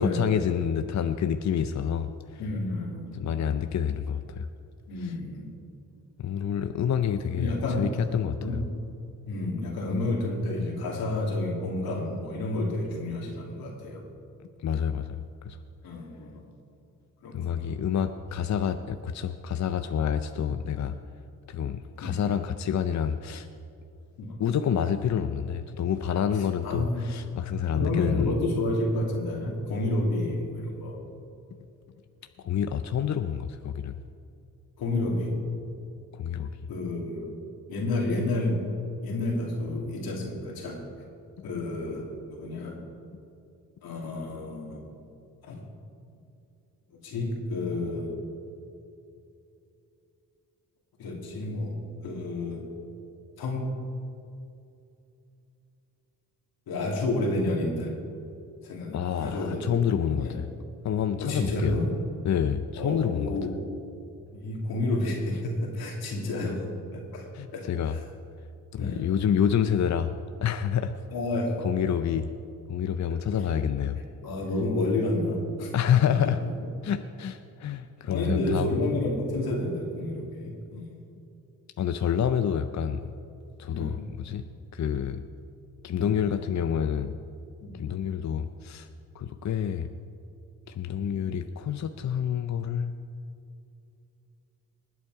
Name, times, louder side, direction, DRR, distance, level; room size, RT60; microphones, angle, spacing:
voice 1, 0.0-2.4 3.1-4.5 5.0-5.1 6.2-7.5 7.8-8.6 14.6-15.6 17.3-21.0 21.5-23.5 24.4-28.3 32.4-33.9 36.1-36.5 58.9-60.5 60.8-61.8 62.3-63.4 67.3-68.0 68.7-70.1 70.4-70.9 71.6-72.3 72.7-74.0 75.7-76.4 76.8-78.7 81.8-83.1 83.6-84.4 84.7-85.2 85.8-87.2 87.7-88.9 89.1-89.9 90.7-92.9, left 8 dB, 50° left, 9 dB, 0.6 m, -28 dB
voice 2, 2.4-3.1 4.9-5.5 7.3-7.9 8.4-8.6 9.3-14.0 15.8-16.5 17.2-17.8 22.0-22.2 24.2-24.4 26.3-27.0 27.7-31.0 34.8-35.3 36.7-37.3 37.7-38.7 39.0-40.9 41.4-42.8 43.8-44.8 45.4-45.6 47.0-48.2 51.0-52.7 53.4-53.7 56.7-58.0 58.6-59.7 60.2-60.4 61.2-61.9 62.8-63.6 64.3-67.2 67.5-68.0 68.7-69.0 71.1-71.6 73.1-73.2 74.2-75.7 78.1-80.9 83.7-84.0 85.9-86.1 87.6-87.8, left 2 dB, 85° left, -1 dB, 2.5 m, -30 dB
20.0 x 8.4 x 4.7 m, 2.6 s
cardioid pair, 60°, 36 cm